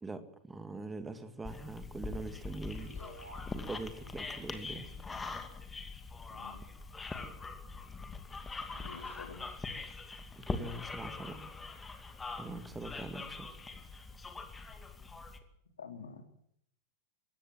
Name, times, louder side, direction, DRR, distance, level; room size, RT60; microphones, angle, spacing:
voice 1, 0.0-2.9 3.5-4.9 10.4-11.5 12.4-13.5, right 2 dB, 10° right, 9 dB, 2.4 m, -43 dB
sound 1, 1.4-15.4, left 4 dB, 15° left, 2.4 m, -43 dB
sound 2, 2.7-5.9, right 1 dB, 75° right, 7.1 m, -57 dB
voice 2, 6.3-6.7 8.8-9.6 15.8-16.3, left 5 dB, 70° left, 7 dB, 3.2 m, -48 dB
23.5 x 17.5 x 7.8 m, 0.70 s
figure-of-eight pair, 90°, 0 cm